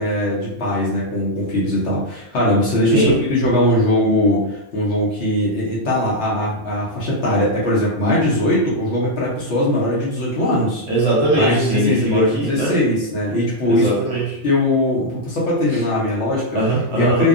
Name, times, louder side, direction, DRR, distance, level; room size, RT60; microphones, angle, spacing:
voice 1, 0.0-4.4 4.7-10.8 11.3-13.9 14.4-16.6 16.9-17.3, left 1 dB, 55° left, -6 dB, 0.9 m, -20 dB
voice 2, 10.9-12.7 13.7-14.4 16.5-17.3, right 1 dB, 60° right, -4 dB, 1.0 m, -20 dB
2.7 x 2.2 x 2.4 m, 0.81 s
omnidirectional pair, 1.5 m